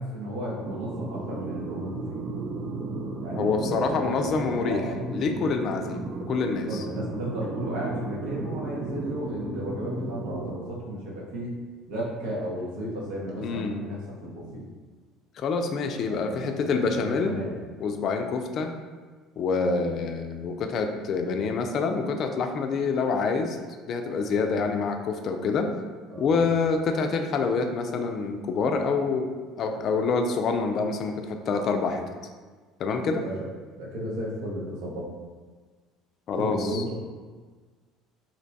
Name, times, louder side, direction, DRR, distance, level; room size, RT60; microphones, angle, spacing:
voice 1, 0.0-2.3 3.2-5.0 6.7-11.5 11.9-14.7 16.0-17.6 24.4-24.7 26.1-26.4 33.1-33.5 33.7-35.0 36.4-37.0, equal, 80° right, -4 dB, 0.9 m, -34 dB
sound 1, 0.7-10.6, right 3 dB, 45° right, 0.4 m, -34 dB
voice 2, 3.4-6.8 13.4-13.8 15.4-17.4 17.8-18.7 19.4-23.6 23.9-25.7 26.2-29.3 29.6-32.0 32.8-33.2 36.3-36.8, left 4 dB, 50° left, 5 dB, 0.4 m, -26 dB
2.8 x 2.2 x 4.0 m, 1.4 s
supercardioid pair, 110°, 0 cm